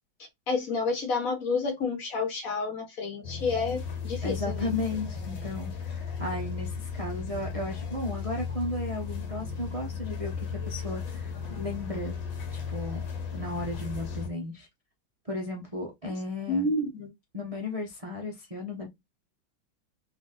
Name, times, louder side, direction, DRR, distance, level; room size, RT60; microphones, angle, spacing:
voice 1, 0.5-4.7 16.5-17.1, left 3 dB, 50° left, 1.3 m, -29 dB
sound 1, 3.2-14.3, left 6 dB, 70° left, 1.9 m, -35 dB
voice 2, 4.2-12.2 12.5-13.0 13.3-14.7 15.3-16.7 17.3-18.9, left 2 dB, 45° right, 0.4 m, -35 dB
4.1 x 2.6 x 3.8 m
omnidirectional pair, 2.2 m